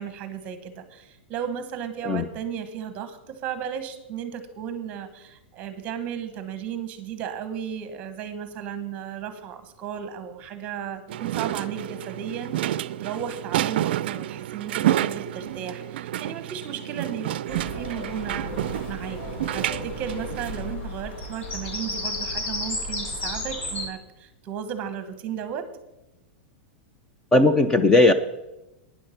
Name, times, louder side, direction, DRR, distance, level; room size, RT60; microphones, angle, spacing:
voice 1, 0.0-19.2 19.5-25.7, right 8 dB, 25° right, 11 dB, 1.1 m, -35 dB
sound 1, 11.1-20.7, right 13 dB, 60° right, 0.4 m, -29 dB
Bird vocalization bird call bird song, 17.5-23.9, left 2 dB, 85° left, 4.0 m, -33 dB
voice 2, 27.3-28.1, left 2 dB, 10° left, 9 dB, 0.4 m, -17 dB
12.0 x 9.7 x 5.7 m, 0.97 s
supercardioid pair, 170°, 6 cm